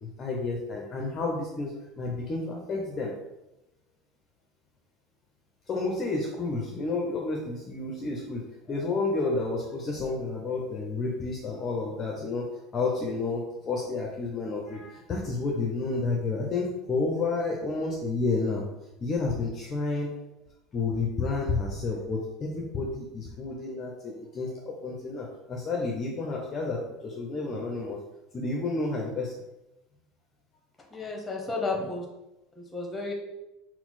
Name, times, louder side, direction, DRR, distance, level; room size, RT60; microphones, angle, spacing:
voice 1, 0.0-3.1 5.7-12.5 12.7-18.6 19.0-20.1 20.7-28.0 28.3-29.4 31.5-31.6, left 3 dB, 35° left, -1 dB, 0.6 m, -30 dB
voice 2, 30.9-32.0 32.6-33.1, left 3 dB, 15° left, 0 dB, 1.0 m, -32 dB
4.2 x 2.0 x 4.1 m, 0.95 s
figure-of-eight pair, 70°, 0 cm